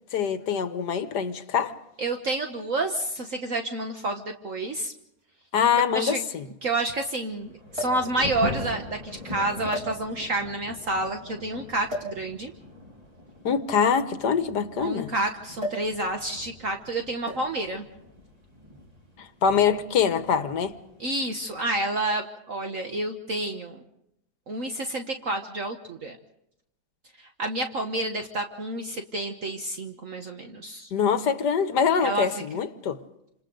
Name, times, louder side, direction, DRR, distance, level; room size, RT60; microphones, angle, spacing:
voice 1, 0.1-1.7 5.5-6.4 13.4-15.1 19.2-20.7 30.9-33.0, left 7 dB, 75° left, 1.7 m, -24 dB
voice 2, 2.0-4.9 5.9-6.2 6.6-12.5 14.8-17.8 21.0-23.8 24.5-26.2 27.2-30.9 32.0-32.3, right 2 dB, 50° right, 1.5 m, -29 dB
sound 1, 4.0-4.1 5.2-5.3 5.5-5.6 7.7-8.1 8.9-9.1 9.7-10.4 11.9-12.2 13.3-15.0 15.6-16.0 16.2-16.5 17.3-17.6 18.6-18.9, equal, 35° right, 4.7 m, -35 dB
Thunder / Rain, 7.3-21.7, left 1 dB, 20° right, 3.7 m, -42 dB
28.5 x 26.5 x 3.9 m
omnidirectional pair, 1.8 m